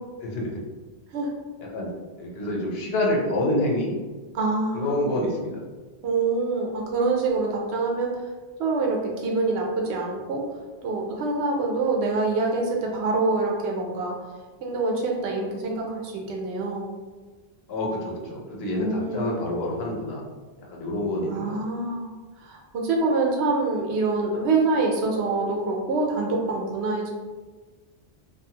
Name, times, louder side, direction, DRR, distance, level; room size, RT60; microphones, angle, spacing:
voice 1, 0.2-0.6 1.7-1.9 2.2-4.0 4.7-5.6 17.7-20.2 20.7-21.4, left 1 dB, 75° left, -2 dB, 0.9 m, -27 dB
voice 2, 4.3-5.1 6.0-8.1 8.6-10.4 10.8-14.2 14.6-16.9 18.8-19.3 21.3-22.1 22.4-27.1, right 3 dB, 90° right, 0 dB, 0.9 m, -25 dB
2.6 x 2.4 x 2.7 m, 1.3 s
omnidirectional pair, 1.1 m